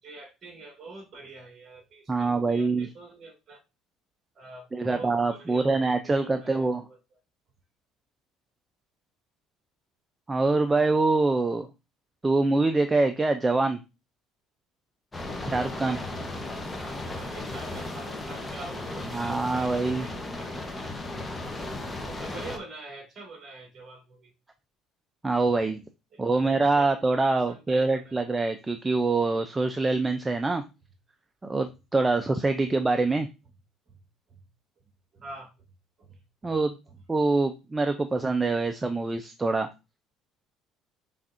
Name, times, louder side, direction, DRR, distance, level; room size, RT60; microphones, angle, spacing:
voice 1, 0.0-3.6 4.3-7.0 16.5-20.7 21.5-24.3 26.1-28.3 33.9-34.0 34.3-34.5 35.1-35.7 36.0-36.6 36.9-37.0, right 2 dB, 40° right, 1 dB, 2.0 m, -46 dB
voice 2, 2.1-2.9 4.7-6.8 10.3-11.7 12.2-13.8 15.4-16.0 19.1-20.1 25.2-25.8 26.2-30.6 31.4-33.3 36.4-36.8 37.1-39.7, right 3 dB, 15° right, 7 dB, 0.4 m, -25 dB
sound 1, 15.1-22.6, left 2 dB, 15° left, 0.9 m, -35 dB
5.7 x 3.5 x 2.6 m, 0.27 s
supercardioid pair, 100°, 0 cm